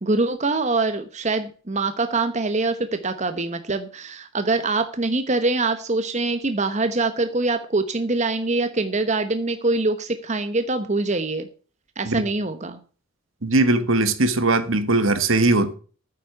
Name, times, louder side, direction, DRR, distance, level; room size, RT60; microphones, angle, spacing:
voice 1, 0.0-11.5 12.0-12.8, right 3 dB, 35° right, 1.0 m, -24 dB
voice 2, 13.4-15.7, right 2 dB, 65° right, 1.4 m, -20 dB
9.4 x 8.3 x 8.3 m
head